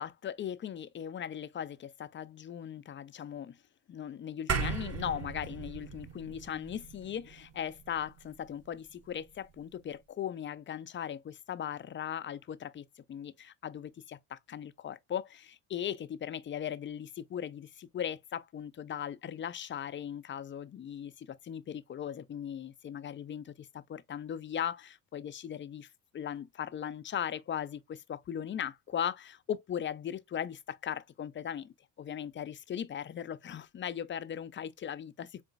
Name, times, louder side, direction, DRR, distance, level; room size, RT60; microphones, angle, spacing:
voice 1, 0.0-3.6 3.9-25.9 26.1-35.4, left 9 dB, 25° left, 0.4 m, -38 dB
sound 1, 4.5-9.1, right 5 dB, 30° right, 1.0 m, -38 dB
4.0 x 3.7 x 2.4 m
hypercardioid pair, 60°, 47 cm